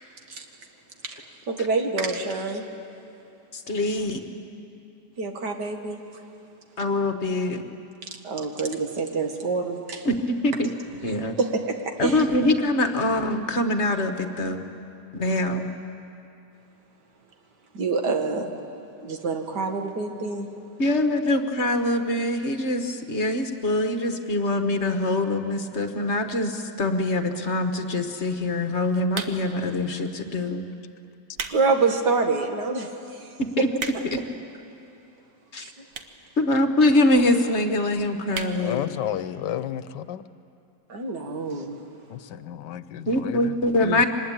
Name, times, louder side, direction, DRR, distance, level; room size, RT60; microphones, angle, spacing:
voice 1, 1.0-2.6 5.2-6.0 8.0-10.1 11.4-12.3 17.7-18.6 19.0-20.5 31.5-33.7 35.6-35.7 40.9-41.8, right 4 dB, 75° right, 4 dB, 2.3 m, -27 dB
voice 2, 3.5-4.2 6.8-7.6 10.0-10.7 11.0-11.3 12.0-14.6 15.1-15.7 20.8-30.7 33.4-33.7 35.5-35.7 36.4-38.8 43.1-44.1, left 1 dB, 45° left, 6 dB, 1.4 m, -24 dB
sound 1, 29.1-29.7 30.4-30.6 31.1-31.6 32.1-32.2 32.8-32.9 33.1-33.2 33.4-34.3 35.0-35.1 35.9-36.2 36.5-36.6 36.8-36.9 37.2-37.3 37.6-37.8 38.3-38.6 39.0-39.1 39.3-39.4, right 5 dB, 55° right, 1.5 m, -34 dB
voice 3, 38.5-40.2 42.1-43.5 43.8-44.1, left 11 dB, 90° left, 14 dB, 1.4 m, -32 dB
24.5 x 20.0 x 8.9 m, 2.8 s
omnidirectional pair, 1.8 m